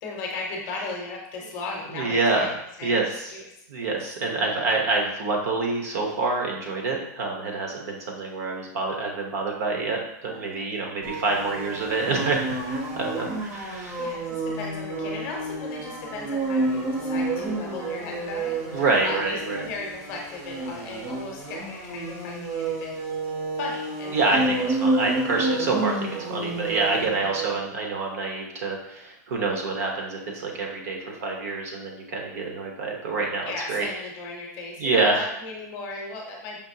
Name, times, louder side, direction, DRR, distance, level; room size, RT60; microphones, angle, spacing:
voice 1, 0.0-3.0 3.3-3.4 3.8-3.9 10.3-10.7 14.0-23.0 23.5-24.7 27.1-27.3 33.5-36.6, left 3 dB, 30° left, -1 dB, 0.7 m, -36 dB
voice 2, 1.9-2.5 2.8-3.3 3.7-14.0 18.7-19.7 24.1-24.5 24.8-33.9 34.8-35.3, right 3 dB, 55° right, 1 dB, 0.9 m, -27 dB
sound 1, 11.0-27.6, right 2 dB, 30° right, 0.7 m, -30 dB
5.1 x 2.8 x 2.8 m, 0.80 s
supercardioid pair, 180°, 10 cm